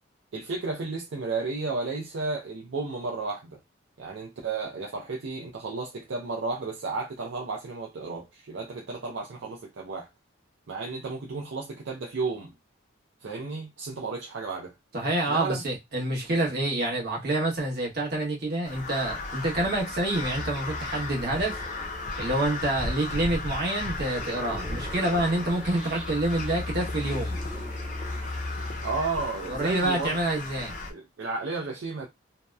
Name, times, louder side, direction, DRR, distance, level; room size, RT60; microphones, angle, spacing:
voice 1, 0.3-3.6 4.0-10.1 10.7-12.5 13.2-14.7 15.3-15.6 28.8-30.2 30.9-32.1, right 3 dB, 65° right, 0.5 m, -33 dB
voice 2, 14.9-21.6 22.2-27.4 29.5-30.7, right 1 dB, 50° right, 0.9 m, -27 dB
Crow, 18.6-30.9, left 3 dB, 40° left, 0.5 m, -36 dB
sound 1, 20.3-29.3, left 2 dB, 5° right, 0.6 m, -38 dB
2.7 x 2.0 x 2.2 m
head